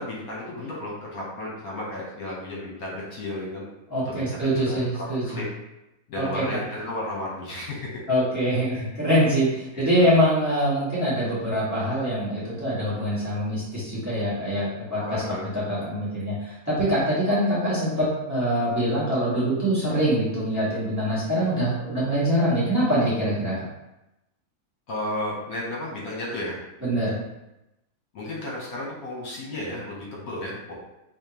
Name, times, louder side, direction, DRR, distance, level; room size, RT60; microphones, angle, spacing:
voice 1, 0.0-3.6 4.0-5.5 6.1-7.9 8.7-8.9 9.7-10.2 15.0-15.4 24.9-26.6 28.1-30.7, left 1 dB, 70° left, -4 dB, 1.4 m, -33 dB
voice 2, 3.9-5.4 6.1-6.4 8.1-15.2 15.5-23.5 26.8-27.2, equal, 10° right, -10 dB, 1.4 m, -24 dB
4.2 x 3.0 x 2.9 m, 0.93 s
omnidirectional pair, 1.6 m